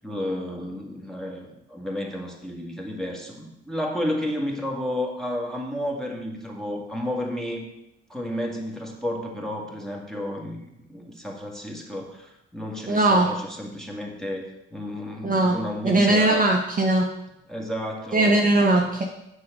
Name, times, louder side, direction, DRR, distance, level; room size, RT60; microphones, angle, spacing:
voice 1, 0.0-7.7 8.1-16.4 17.5-18.8, left 1 dB, ahead, 0 dB, 2.1 m, -32 dB
voice 2, 12.9-13.3 15.2-15.6 15.8-17.0 18.1-19.0, right 2 dB, 25° right, 1 dB, 1.2 m, -19 dB
6.8 x 5.0 x 6.7 m, 0.85 s
hypercardioid pair, 50°, 30 cm